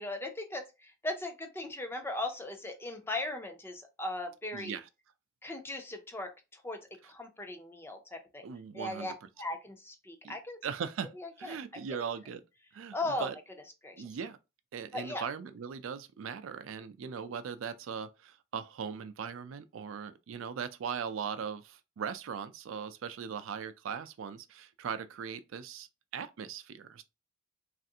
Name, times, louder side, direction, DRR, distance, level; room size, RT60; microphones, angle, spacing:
voice 1, 0.0-4.8 5.4-8.4 8.7-10.7 11.2-11.6 11.9-12.1 12.9-13.3 13.8-14.1 14.9-15.3, left 2 dB, 10° left, 0.4 m, -38 dB
voice 2, 4.5-4.9 8.4-9.1 10.2-10.3 10.6-12.4 12.7-13.4 14.0-14.4 14.7-25.9 26.1-27.0, right 7 dB, 80° right, 0.4 m, -39 dB
3.2 x 2.5 x 2.7 m
head